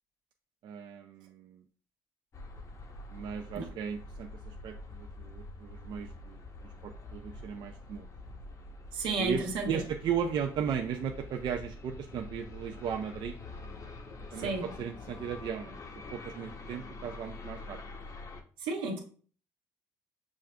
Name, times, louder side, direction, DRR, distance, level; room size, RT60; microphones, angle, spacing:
voice 1, 0.6-1.6 3.1-6.4 6.8-8.1 9.2-13.4 14.3-14.5 14.8-15.7 16.1-17.8, right 8 dB, 60° right, 4 dB, 0.4 m, -36 dB
sound 1, 2.3-18.4, left 2 dB, 40° left, 0.7 m, -46 dB
voice 2, 8.9-9.8 14.3-14.7 18.6-19.0, right 3 dB, 80° right, 1 dB, 0.9 m, -33 dB
6.2 x 2.4 x 2.2 m, 0.43 s
supercardioid pair, 75°, 8 cm